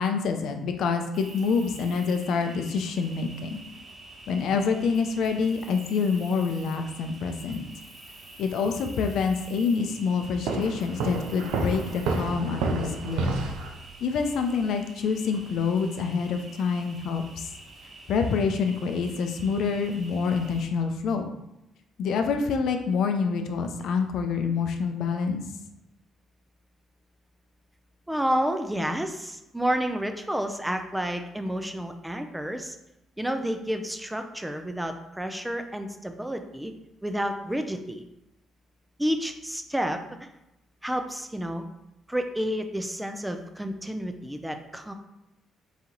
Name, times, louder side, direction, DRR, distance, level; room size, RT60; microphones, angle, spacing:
voice 1, 0.0-3.6 4.3-7.6 8.4-13.4 14.0-17.5 18.1-21.3 22.0-25.4, left 5 dB, 75° left, 5 dB, 0.5 m, -27 dB
Cricket, 1.1-20.6, right 2 dB, 45° right, 1.2 m, -47 dB
Walk footsteps, 10.5-13.8, right 3 dB, 85° right, 0.5 m, -29 dB
voice 2, 28.1-32.8 33.2-36.7 37.0-38.0 39.0-40.3 40.8-41.7 42.1-44.9, equal, 5° right, 6 dB, 0.5 m, -30 dB
4.1 x 2.8 x 3.8 m, 0.88 s
cardioid pair, 80°, 0 cm